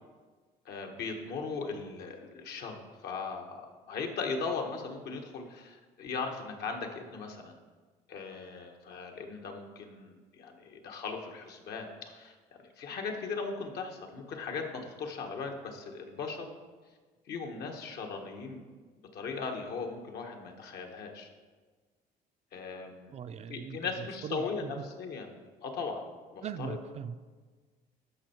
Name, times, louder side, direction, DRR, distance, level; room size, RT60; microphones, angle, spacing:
voice 1, 0.6-7.6 8.1-16.5 17.3-18.6 19.1-21.3 22.5-23.2 23.5-25.3 25.6-26.0 26.3-26.8, left 4 dB, 70° left, 3 dB, 1.4 m, -38 dB
voice 2, 23.1-23.8 24.2-24.7 26.4-27.2, right 7 dB, 40° right, 11 dB, 0.4 m, -40 dB
12.0 x 5.6 x 4.4 m, 1.4 s
cardioid pair, 110°, 17 cm